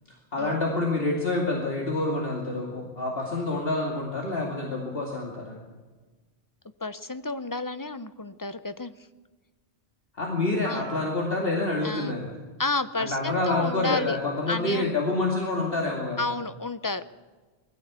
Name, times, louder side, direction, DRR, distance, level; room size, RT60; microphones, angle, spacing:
voice 1, 0.3-5.6 10.1-12.3 13.0-16.3, left 2 dB, 55° left, -1 dB, 2.8 m, -27 dB
voice 2, 6.8-8.9 10.6-10.9 11.8-12.2 12.6-14.2 14.5-15.1 16.2-17.0, left 3 dB, 25° left, 13 dB, 0.5 m, -31 dB
21.0 x 15.5 x 8.3 m, 1.3 s
omnidirectional pair, 1.2 m